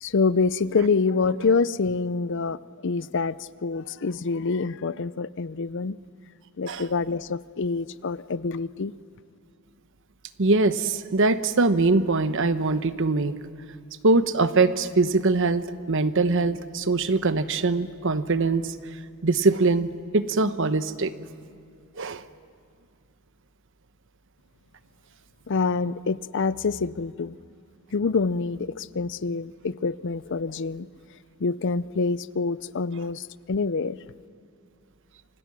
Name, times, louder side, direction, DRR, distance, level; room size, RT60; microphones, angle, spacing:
voice 1, 0.0-3.4 3.6-6.0 6.6-8.9 25.5-27.3 27.9-30.9 31.4-34.0, left 4 dB, 55° left, 17 dB, 0.5 m, -26 dB
voice 2, 10.4-13.3 14.0-18.7 19.2-21.1 22.0-22.2, right 3 dB, 60° right, 12 dB, 1.0 m, -22 dB
29.0 x 25.5 x 6.1 m, 2.4 s
head